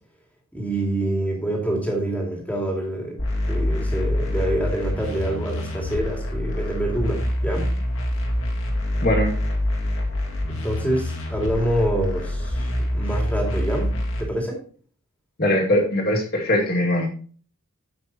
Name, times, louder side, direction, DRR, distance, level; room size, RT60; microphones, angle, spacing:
voice 1, 0.5-7.7 10.5-13.9 14.2-14.6, right 1 dB, 5° left, 0 dB, 2.3 m, -26 dB
sound 1, 3.2-14.2, left 1 dB, 65° left, 2.2 m, -26 dB
voice 2, 9.0-9.3 15.4-17.1, left 1 dB, 45° left, 1 dB, 2.2 m, -21 dB
14.0 x 5.7 x 2.9 m, 0.43 s
head